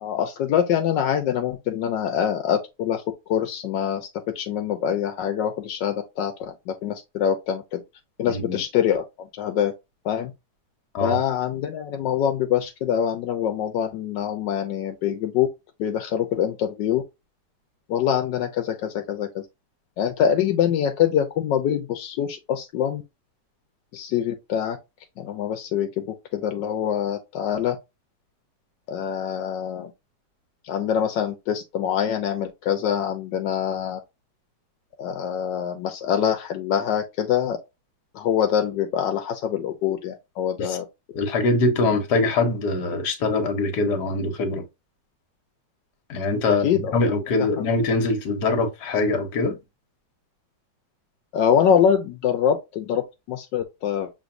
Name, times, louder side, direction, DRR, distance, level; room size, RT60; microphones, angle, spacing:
voice 1, 0.0-4.1 4.3-7.8 8.2-9.7 10.0-10.3 11.0-15.5 15.8-17.0 17.9-19.4 20.0-23.0 23.9-24.8 25.2-27.8 28.9-29.9 30.6-34.0 35.0-37.6 38.1-40.9 46.5-47.0 51.3-54.1, left 9 dB, 85° left, 1.3 m, -24 dB
voice 2, 8.3-8.6 10.9-11.2 40.6-40.8 41.2-44.6 46.1-49.6, left 3 dB, 70° left, 1.6 m, -23 dB
6.4 x 3.1 x 2.6 m
omnidirectional pair, 1.9 m